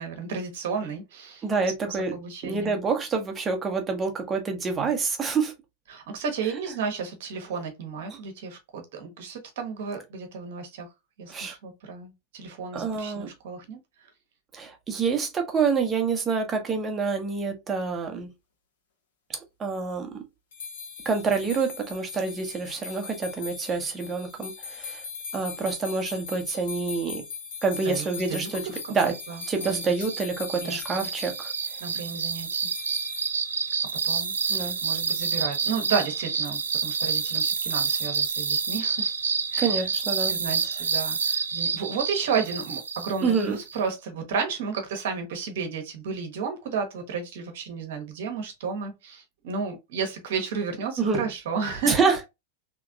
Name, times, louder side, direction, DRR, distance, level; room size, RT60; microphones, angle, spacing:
voice 1, 0.0-1.4 1.8-2.8 5.9-10.9 11.2-13.8 27.8-28.8 29.0-29.8 30.6-31.1 31.8-32.6 34.0-39.1 39.5-39.7 40.3-52.1, right 5 dB, 55° right, 1.1 m, -32 dB
voice 2, 1.4-2.2 2.4-5.5 11.3-11.5 12.7-13.3 14.5-18.3 19.3-20.2 21.0-25.0 25.3-27.2 27.6-29.2 29.5-31.5 34.5-34.8 39.6-40.4 43.2-43.6 51.0-51.2 51.9-52.2, right 5 dB, 20° right, 1.0 m, -27 dB
sound 1, 20.5-31.6 32.6-33.3, left 5 dB, 60° left, 1.0 m, -40 dB
sound 2, 28.8-43.8, right 5 dB, 70° right, 0.5 m, -28 dB
3.4 x 3.0 x 2.4 m
figure-of-eight pair, 90°, 0 cm